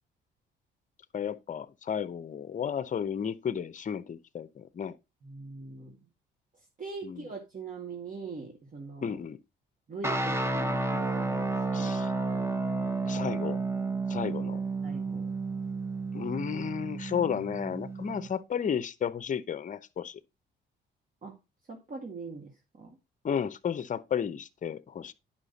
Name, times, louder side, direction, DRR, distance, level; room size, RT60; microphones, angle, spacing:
voice 1, 1.1-5.0 7.0-7.3 9.0-9.4 11.7-12.4 13.1-13.6 14.1-14.6 16.1-20.2 23.2-25.1, left 8 dB, 40° left, 0.8 m, -33 dB
voice 2, 5.2-6.0 6.8-9.2 9.9-12.0 14.8-15.3 21.2-21.4 21.7-22.5 22.8-23.0, right 4 dB, 40° right, 2.1 m, -42 dB
sound 1, 10.0-18.3, right 3 dB, 15° right, 1.1 m, -31 dB
9.8 x 5.8 x 4.1 m
cardioid pair, 90°, 20 cm